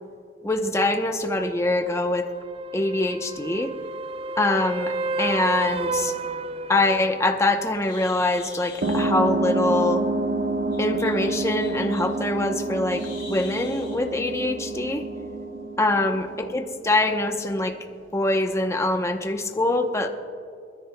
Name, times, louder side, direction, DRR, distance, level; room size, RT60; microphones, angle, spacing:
voice 1, 0.4-2.3 2.7-3.7 4.4-6.1 6.7-10.0 10.8-15.1 15.8-17.8 18.1-20.1, left 2 dB, 15° left, 5 dB, 0.7 m, -24 dB
sound 1, 1.6-7.3 11.4-11.5, right 3 dB, 30° right, 0.4 m, -32 dB
Bird, 6.8-14.0, left 5 dB, 45° left, 2.1 m, -46 dB
sound 2, 8.8-16.9, right 2 dB, 90° right, 1.3 m, -28 dB
29.5 x 10.5 x 2.2 m, 2.4 s
head